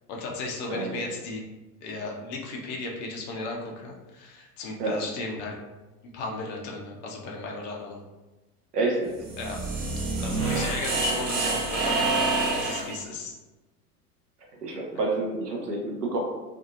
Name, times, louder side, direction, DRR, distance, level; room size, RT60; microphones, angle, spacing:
voice 1, 0.1-1.4 1.8-5.6 6.1-8.0 9.4-9.6 10.2-13.3, left 3 dB, 25° left, -1 dB, 0.4 m, -35 dB
voice 2, 0.7-1.0 4.8-5.0 8.7-9.2 10.5-10.6 14.6-16.2, right 2 dB, 80° right, 0 dB, 0.7 m, -28 dB
sound 1, 9.1-13.0, right 3 dB, 50° right, 1.0 m, -27 dB
2.6 x 2.3 x 2.6 m, 1.1 s
figure-of-eight pair, 80°, 48 cm